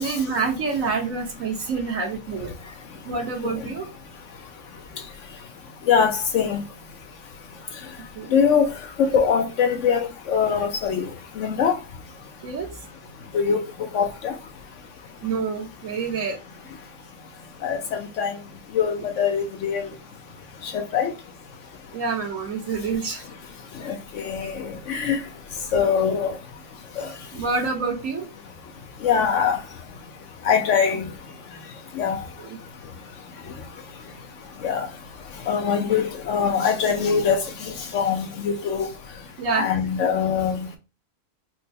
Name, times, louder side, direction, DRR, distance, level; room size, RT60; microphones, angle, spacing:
voice 1, 0.0-2.5 3.0-3.9 8.1-8.3 12.4-12.9 15.2-16.4 21.9-23.2 27.0-28.3 32.4-32.6 39.4-39.7, right 4 dB, 70° right, 1.4 m, -27 dB
voice 2, 5.9-6.6 8.3-8.6 9.0-11.1 11.4-11.8 13.3-13.6 13.9-14.3 17.6-17.8 18.2-18.3 18.7-19.9 20.7-21.1 23.8-25.2 25.7-26.4 27.0-27.1 29.0-29.6 30.4-31.1 32.0-32.2 34.6-34.9 35.5-38.9 39.5-40.6, left 7 dB, 65° left, 0.8 m, -22 dB
4.4 x 2.1 x 2.7 m
omnidirectional pair, 1.5 m